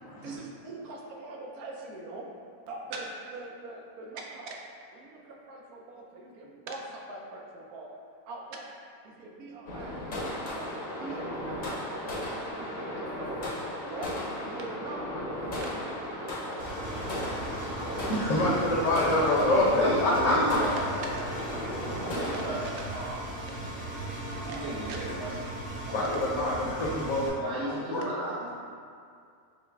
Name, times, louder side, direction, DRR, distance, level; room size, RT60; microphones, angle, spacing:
voice 1, 0.2-2.3 2.7-4.6 4.9-8.0 8.3-8.7 9.0-13.5 13.8-16.9 17.1-18.1 18.4-18.8 19.2-19.3 19.8-20.0 20.4-23.1 23.5-23.9 24.4-25.3 25.9-26.5 27.7-28.3, right 2 dB, 85° right, 0 dB, 1.1 m, -42 dB
sound 1, 9.7-22.4, left 1 dB, 45° left, 0.7 m, -35 dB
Engine, 16.6-27.3, right 1 dB, 10° right, 0.4 m, -38 dB
voice 2, 18.1-20.3 24.2-24.5 25.8-27.3 27.9-28.3, left 2 dB, 70° left, -7 dB, 1.1 m, -26 dB
voice 3, 19.3-20.8 22.1-23.2 24.3-25.4 27.3-28.5, right 2 dB, 60° right, -6 dB, 0.8 m, -33 dB
5.5 x 2.0 x 3.4 m, 2.3 s
omnidirectional pair, 1.5 m